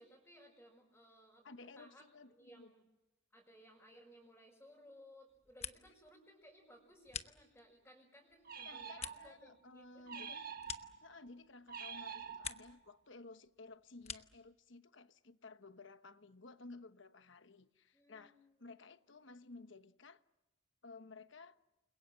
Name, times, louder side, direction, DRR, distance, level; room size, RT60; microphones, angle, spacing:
voice 1, 0.0-2.1 2.4-2.8 3.3-10.4 17.9-18.7, equal, 10° left, 5.7 m, -61 dB
voice 2, 1.4-2.7 8.6-10.4 11.0-20.2 20.8-21.6, left 3 dB, 60° left, 1.1 m, -55 dB
sound 1, 5.3-6.1 6.4-7.9 8.3-11.6 11.9-12.9 13.2-14.5, left 8 dB, 30° left, 1.0 m, -49 dB
sound 2, 8.5-9.5 10.1-11.1 11.7-12.9, right 6 dB, 45° right, 1.5 m, -47 dB
29.5 x 22.5 x 7.6 m
head